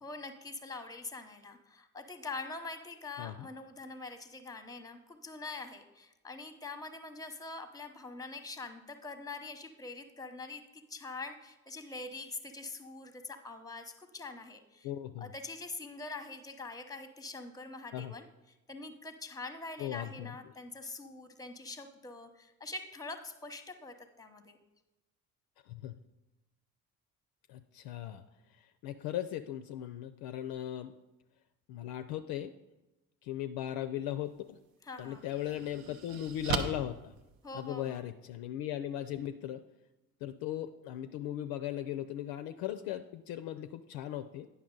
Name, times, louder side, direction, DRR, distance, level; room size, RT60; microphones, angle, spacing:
voice 1, 0.0-14.9 15.2-18.3 18.7-24.6 34.8-35.3 37.4-38.0, left 3 dB, 10° left, 8 dB, 0.8 m, -44 dB
voice 2, 14.8-15.3 17.9-18.1 19.8-20.3 25.7-25.9 27.5-28.2 28.8-30.9 31.7-32.5 33.2-34.6 35.0-37.1 37.5-39.6 40.2-44.5, left 12 dB, 55° left, 10 dB, 0.5 m, -38 dB
sound 1, 34.3-34.4 35.0-38.0, right 6 dB, 65° right, 0.7 m, -38 dB
9.4 x 5.8 x 3.8 m, 1.0 s
figure-of-eight pair, 50°, 43 cm